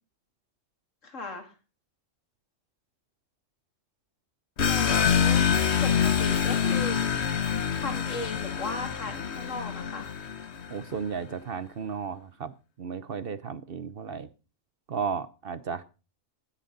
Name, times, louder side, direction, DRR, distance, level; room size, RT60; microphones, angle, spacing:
voice 1, 1.0-1.5 4.6-5.4 5.8-7.0 7.8-10.1, left 2 dB, 85° left, 5 dB, 3.0 m, -37 dB
sound 1, 4.6-10.8, left 7 dB, 60° left, 1.3 m, -26 dB
voice 2, 10.7-14.3 14.9-15.8, right 6 dB, 55° right, 15 dB, 1.0 m, -34 dB
17.0 x 10.0 x 4.0 m, 0.32 s
omnidirectional pair, 1.3 m